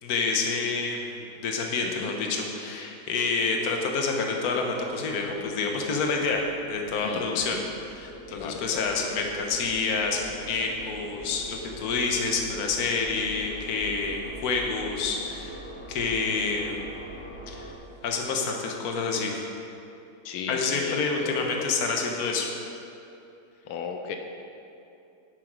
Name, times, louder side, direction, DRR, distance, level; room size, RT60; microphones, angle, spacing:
voice 1, 0.0-15.6 15.9-16.8 17.5-17.7 18.0-19.5 20.5-22.5, left 4 dB, 50° left, 2 dB, 1.5 m, -28 dB
voice 2, 1.8-2.1 7.0-7.6 8.3-8.9 20.2-21.7 23.7-24.2, left 6 dB, 85° left, 5 dB, 1.5 m, -36 dB
sound 1, 4.5-17.7, equal, 30° left, 1.9 m, -43 dB
11.0 x 8.3 x 4.8 m, 2.7 s
omnidirectional pair, 2.2 m